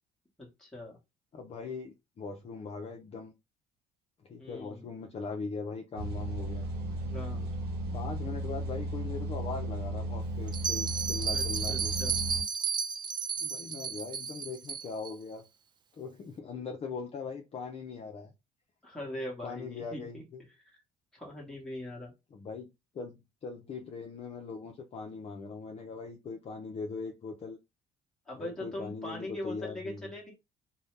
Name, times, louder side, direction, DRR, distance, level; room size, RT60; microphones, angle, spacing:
voice 1, 0.4-1.0 4.4-4.9 7.0-7.5 11.3-12.2 18.8-20.8 21.1-22.1 28.3-30.3, left 1 dB, 5° left, 1.0 m, -41 dB
voice 2, 1.3-3.3 4.3-6.7 7.9-11.9 13.4-15.5 16.0-18.3 19.4-20.4 22.3-27.6 28.4-30.1, left 4 dB, 35° left, 0.5 m, -40 dB
sound 1, 6.0-12.4, right 1 dB, 70° right, 1.1 m, -35 dB
Bell, 10.5-15.1, right 6 dB, 25° right, 0.4 m, -33 dB
2.6 x 2.1 x 3.1 m
cardioid pair, 110°, 17 cm